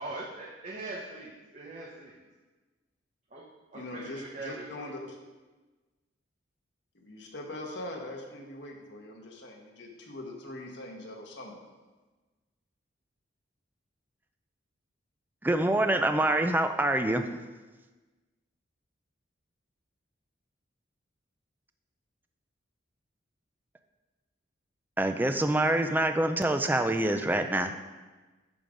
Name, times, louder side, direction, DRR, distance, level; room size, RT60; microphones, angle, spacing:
voice 1, 0.0-2.1 3.3-3.4 3.7-4.9, right 2 dB, 35° right, -4 dB, 0.9 m, -41 dB
voice 2, 3.7-5.2 6.9-11.7, left 1 dB, 65° left, 0 dB, 1.3 m, -42 dB
voice 3, 15.4-17.3 25.0-27.7, right 1 dB, 10° right, 7 dB, 0.3 m, -26 dB
11.0 x 3.7 x 5.1 m, 1.3 s
head